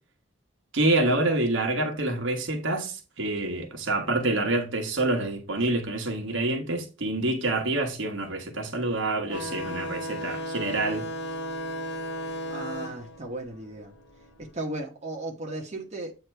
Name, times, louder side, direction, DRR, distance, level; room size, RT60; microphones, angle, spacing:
voice 1, 0.7-11.1, right 2 dB, 70° right, 1.2 m, -27 dB
sound 1, 9.3-14.4, equal, 55° left, 1.2 m, -35 dB
voice 2, 12.5-13.9 14.4-16.2, right 2 dB, 35° right, 1.1 m, -36 dB
8.2 x 2.9 x 4.3 m
head